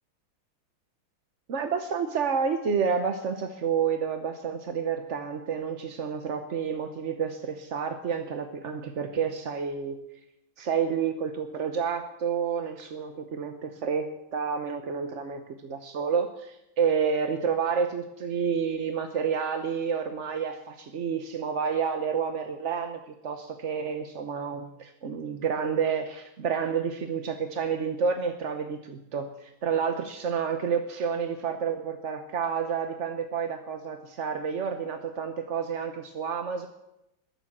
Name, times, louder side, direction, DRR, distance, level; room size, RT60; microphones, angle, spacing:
voice 1, 1.5-10.0 10.6-14.0 14.3-36.7, right 6 dB, 50° right, 7 dB, 0.9 m, -29 dB
21.5 x 7.3 x 7.3 m, 0.87 s
omnidirectional pair, 2.2 m